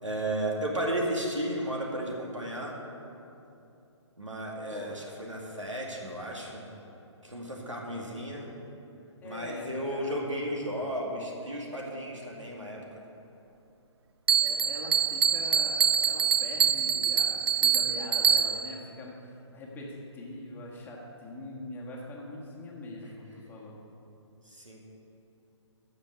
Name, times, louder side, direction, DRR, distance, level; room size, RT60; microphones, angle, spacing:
voice 1, 0.0-2.8 4.2-6.6 7.2-8.5 9.2-12.8 24.5-24.8, right 1 dB, 85° right, -2 dB, 2.2 m, -34 dB
voice 2, 9.2-10.3 14.4-23.8, left 2 dB, 10° left, -3 dB, 1.5 m, -43 dB
Bell, 14.3-18.8, right 7 dB, 55° right, 0.4 m, -25 dB
13.5 x 5.3 x 6.7 m, 2.8 s
figure-of-eight pair, 135°, 16 cm